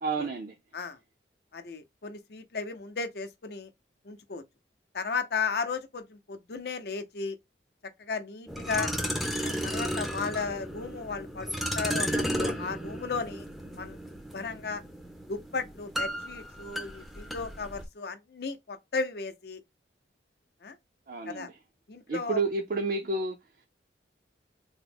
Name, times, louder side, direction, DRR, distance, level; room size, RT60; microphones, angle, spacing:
voice 1, 0.0-0.5 8.7-8.9 21.1-21.6 22.1-23.4, right 3 dB, 50° right, 0.5 m, -30 dB
voice 2, 1.5-3.7 4.0-4.4 4.9-7.4 8.0-8.9 9.4-13.4 13.8-14.0 14.3-14.8 15.3-19.6 20.6-20.7 21.3-21.5 21.9-22.4, left 4 dB, 60° left, 0.6 m, -35 dB
sound 1, 8.5-17.9, equal, ahead, 0.5 m, -34 dB
3.6 x 2.0 x 3.4 m
head